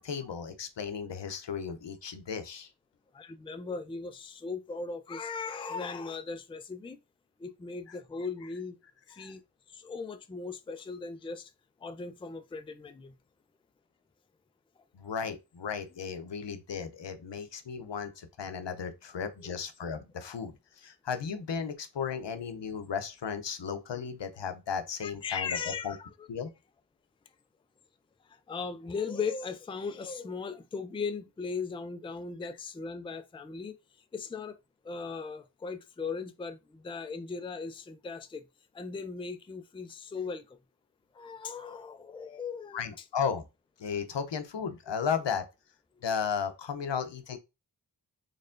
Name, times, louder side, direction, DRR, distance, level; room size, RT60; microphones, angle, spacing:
voice 1, 0.0-2.7 7.9-8.0 9.1-9.3 14.9-25.6 25.8-26.0 26.3-26.5 42.7-43.4 43.8-45.4 46.0-47.4, left 6 dB, 90° left, 0.6 m, -35 dB
voice 2, 3.1-7.0 7.4-8.8 9.1-9.4 9.7-11.5 11.8-13.1 19.4-19.6 25.0-26.1 28.5-33.8 34.1-34.6 34.8-38.4 38.7-40.6 41.1-42.9 47.0-47.1, left 5 dB, 15° left, 0.3 m, -38 dB
4.3 x 3.1 x 2.4 m
wide cardioid pair, 50°, 42 cm